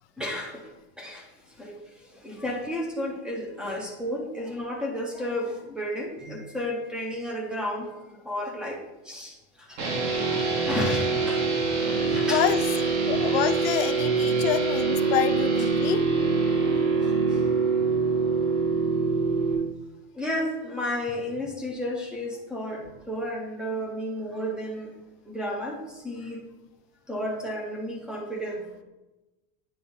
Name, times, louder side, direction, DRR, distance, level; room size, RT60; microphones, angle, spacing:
voice 1, 0.2-0.7 1.0-1.3 1.6-9.9 10.2-11.4 11.8-12.5 15.6-15.7 17.0-17.5 20.1-24.9 25.3-26.4 27.1-28.7, left 1 dB, ahead, 0 dB, 0.3 m, -33 dB
sound 1, 9.8-19.5, right 4 dB, 65° right, 1.8 m, -24 dB
voice 2, 12.2-12.6 13.0-16.0, left 13 dB, 55° left, 11 dB, 0.5 m, -27 dB
8.7 x 3.4 x 5.2 m, 1.0 s
supercardioid pair, 170°, 37 cm